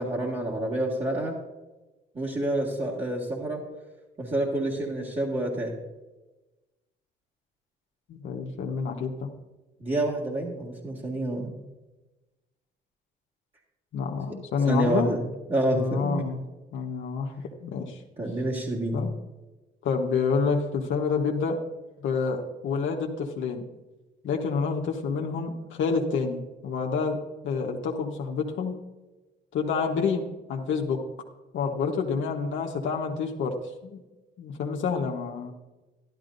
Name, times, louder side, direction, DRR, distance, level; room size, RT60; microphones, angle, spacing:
voice 1, 0.0-1.3 2.1-3.6 4.2-5.7 9.8-11.5 14.7-15.2 15.5-16.2 18.2-19.0, right 1 dB, 30° right, -6 dB, 2.0 m, -28 dB
voice 2, 8.1-9.3 13.9-15.1 15.7-16.4 16.7-18.0 18.9-19.1 19.8-21.6 22.0-23.7 24.2-27.2 27.4-28.8 29.5-31.0 31.5-33.5 33.8-34.0 34.4-35.5, left 5 dB, 75° left, 1 dB, 1.1 m, -28 dB
12.0 x 12.0 x 2.6 m, 1.1 s
cardioid pair, 90°, 20 cm